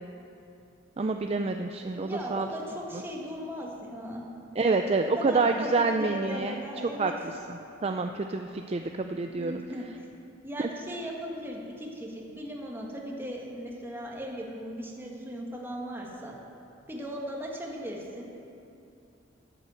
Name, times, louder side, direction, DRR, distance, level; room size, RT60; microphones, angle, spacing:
voice 1, 1.0-2.5 4.6-6.6 7.0-7.1 7.8-9.6 10.6-10.7, right 3 dB, 35° right, 5 dB, 0.4 m, -27 dB
voice 2, 1.9-4.2 4.5-4.8 5.2-7.1 9.3-9.9 10.4-16.3 16.9-18.4, equal, 10° right, -2 dB, 1.7 m, -37 dB
10.0 x 9.1 x 7.7 m, 2.6 s
head